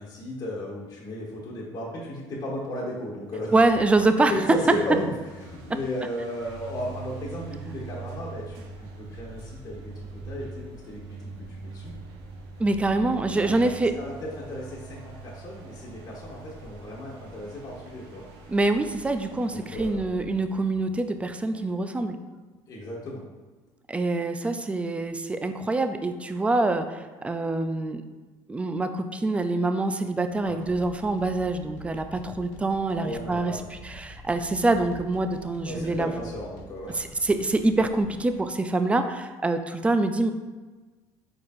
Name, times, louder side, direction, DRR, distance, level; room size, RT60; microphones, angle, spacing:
voice 1, 0.0-3.5 4.3-5.1 5.4-11.0 11.5-11.9 13.3-13.7 13.9-18.2 19.5-20.1 22.7-23.2 30.4-30.6 33.0-33.6 35.6-37.1, left 1 dB, 40° left, -7 dB, 1.4 m, -35 dB
sound 1, 3.3-21.8, right 3 dB, 85° right, 0.7 m, -43 dB
voice 2, 3.5-4.3 12.6-13.9 18.5-22.2 23.9-28.0 28.5-33.5 33.8-36.1 36.9-40.3, right 2 dB, 10° right, 8 dB, 0.3 m, -25 dB
sound 2, 30.4-38.4, left 2 dB, 90° left, 0.6 m, -47 dB
4.8 x 4.2 x 2.5 m, 1.3 s
supercardioid pair, 100°, 10 cm